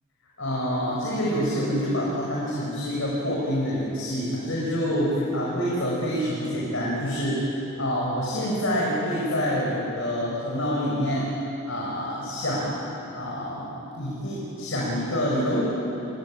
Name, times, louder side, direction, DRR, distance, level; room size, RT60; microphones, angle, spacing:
voice 1, 0.4-11.3 11.7-12.8 13.1-15.6, equal, 65° left, -5 dB, 6.0 m, -27 dB
29.0 x 23.0 x 9.0 m, 3.0 s
head